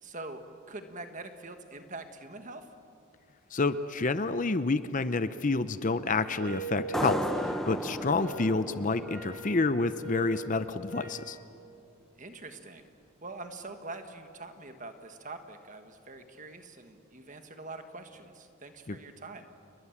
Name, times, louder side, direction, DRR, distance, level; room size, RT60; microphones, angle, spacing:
voice 1, 0.0-2.7 12.2-12.9 13.2-19.5, right 2 dB, 35° right, 7 dB, 1.6 m, -44 dB
voice 2, 3.5-11.4 18.9-19.0, left 3 dB, 35° left, 12 dB, 0.6 m, -29 dB
sound 1, 6.4-11.3, right 1 dB, 55° right, 4.4 m, -42 dB
sound 2, 6.9-10.2, equal, ahead, 0.8 m, -34 dB
30.0 x 22.0 x 7.3 m, 2.5 s
head